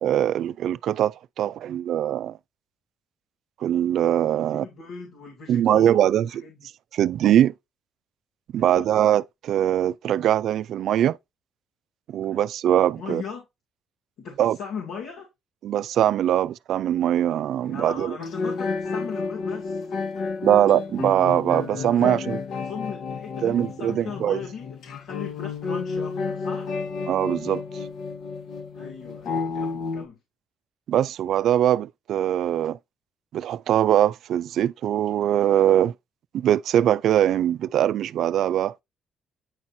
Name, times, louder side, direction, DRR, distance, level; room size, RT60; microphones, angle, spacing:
voice 1, 0.0-2.4 3.6-4.7 5.5-6.4 6.9-7.5 8.5-11.2 12.1-13.2 14.4-14.6 15.6-18.2 20.4-22.4 23.4-24.4 27.1-27.6 30.9-32.8 33.3-35.9 36.3-38.7, right 11 dB, 70° right, 0.3 m, -22 dB
voice 2, 4.5-6.5 8.5-8.9 12.3-12.4 13.0-13.4 14.2-15.3 17.6-19.9 21.9-22.4 22.6-26.7 28.7-30.2, left 6 dB, 85° left, 2.4 m, -38 dB
sound 1, 18.2-30.0, left 4 dB, 70° left, 1.4 m, -31 dB
9.6 x 4.3 x 2.6 m
cardioid pair, 115°, 0 cm